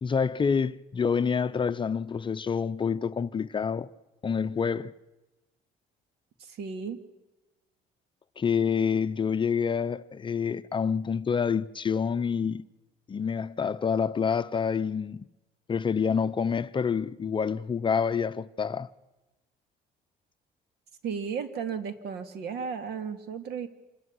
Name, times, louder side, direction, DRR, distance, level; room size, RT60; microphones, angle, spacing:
voice 1, 0.0-3.9 4.2-4.9 8.4-12.6 13.1-15.2 15.7-18.9, left 6 dB, 30° left, 0.7 m, -27 dB
voice 2, 6.4-7.0 21.0-23.7, right 6 dB, 75° right, 2.3 m, -34 dB
27.0 x 14.0 x 9.7 m
cardioid pair, 110°, 17 cm